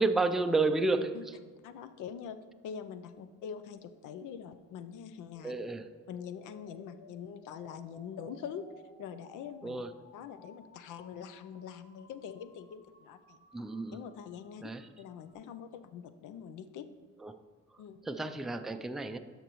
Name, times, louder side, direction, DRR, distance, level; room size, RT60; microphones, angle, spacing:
voice 1, 0.0-1.3 5.4-5.9 9.6-9.9 13.5-14.0 14.6-14.8 17.2-17.4 18.0-19.2, right 3 dB, ahead, 7 dB, 0.3 m, -31 dB
voice 2, 1.6-2.4 2.6-5.5 6.1-8.7 9.0-9.8 10.1-13.4 13.9-14.7 15.0-16.9 17.8-18.0, left 7 dB, 85° left, 11 dB, 0.6 m, -44 dB
sound 1, 5.3-15.3, left 1 dB, 30° left, 1.9 m, -59 dB
13.0 x 5.2 x 3.1 m, 1.5 s
cardioid pair, 90°, 30 cm